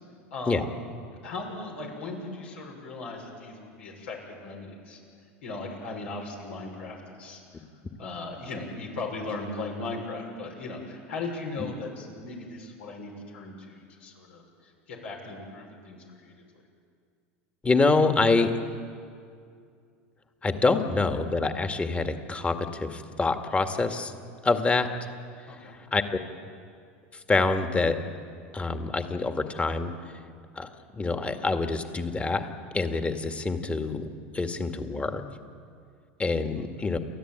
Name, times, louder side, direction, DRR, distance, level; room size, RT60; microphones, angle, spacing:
voice 1, 0.3-0.6 1.1-5.0 5.4-7.7 8.0-16.3 25.5-25.8 36.5-36.9, left 3 dB, 85° left, -1 dB, 6.3 m, -38 dB
voice 2, 17.6-18.5 20.4-24.1 24.4-24.9 25.9-26.0 27.3-28.0 28.5-29.9 30.6-32.5 32.7-34.1 34.3-35.2 36.2-37.0, left 3 dB, 20° left, 6 dB, 1.9 m, -26 dB
29.0 x 13.0 x 9.1 m, 2.3 s
hypercardioid pair, 90°, 7 cm